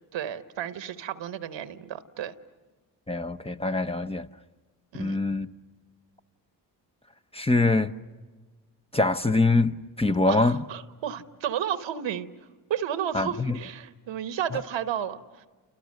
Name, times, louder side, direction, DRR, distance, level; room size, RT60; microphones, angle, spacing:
voice 1, 0.1-2.3 4.9-5.2 10.3-12.3 12.7-15.5, right 9 dB, 75° right, 1.2 m, -32 dB
voice 2, 3.1-4.3 5.0-5.5 7.3-7.9 8.9-10.6 13.1-13.6 14.5-14.6, left 3 dB, 15° left, 0.9 m, -24 dB
29.5 x 29.0 x 6.5 m
supercardioid pair, 50°, 45 cm